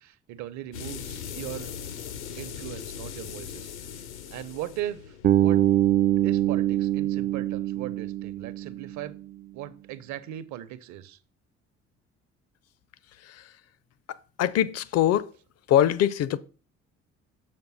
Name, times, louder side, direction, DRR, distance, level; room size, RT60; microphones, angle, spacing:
voice 1, 0.0-1.7 2.4-4.0 4.3-5.6 6.2-9.2 9.5-11.2, right 12 dB, 55° right, 0.8 m, -38 dB
sound 1, 0.7-7.2, left 8 dB, 80° left, 0.9 m, -40 dB
Bass guitar, 5.2-9.2, right 12 dB, 30° right, 0.4 m, -24 dB
voice 2, 14.1-15.3 15.7-16.4, left 11 dB, 50° left, 0.6 m, -23 dB
6.8 x 5.3 x 4.0 m
figure-of-eight pair, 50°, 34 cm